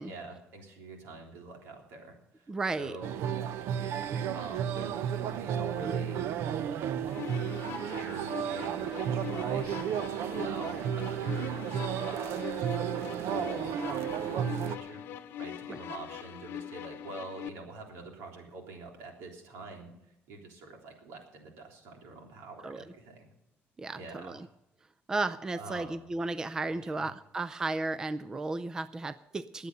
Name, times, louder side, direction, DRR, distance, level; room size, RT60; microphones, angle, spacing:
voice 1, 0.0-2.5 2.8-3.1 3.7-6.3 7.8-9.8 10.2-12.6 13.2-15.1 15.4-19.9 20.3-23.3 24.0-24.5 25.5-26.1 26.8-27.1, right 3 dB, 85° right, 2 dB, 3.5 m, -45 dB
voice 2, 2.5-3.0 15.7-15.8 22.6-22.8 23.8-24.5 25.1-29.7, right 3 dB, 15° right, 14 dB, 0.4 m, -34 dB
sound 1, 3.0-14.8, right 9 dB, 70° right, 0.7 m, -33 dB
sound 2, 7.1-17.5, left 10 dB, 60° left, 0.9 m, -42 dB
21.0 x 8.3 x 5.5 m, 0.85 s
cardioid pair, 170°, 4 cm